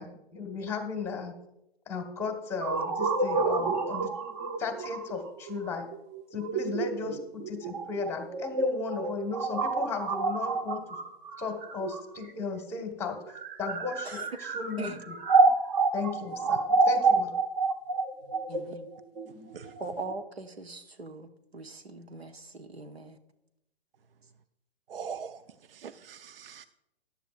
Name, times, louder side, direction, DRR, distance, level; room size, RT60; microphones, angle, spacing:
voice 1, 0.0-1.3 1.9-4.1 4.6-5.9 6.3-10.8 11.4-15.2 15.9-17.3, left 4 dB, 10° left, 4 dB, 1.6 m, -35 dB
sound 1, 2.6-12.4 13.2-20.1, right 3 dB, 30° right, 1.0 m, -28 dB
voice 2, 18.5-18.9 19.8-23.2, right 3 dB, 85° right, 6 dB, 1.1 m, -41 dB
voice 3, 24.9-25.4 25.7-26.6, right 6 dB, 65° right, 12 dB, 0.6 m, -41 dB
14.0 x 11.0 x 2.5 m, 0.89 s
figure-of-eight pair, 120°, 30 cm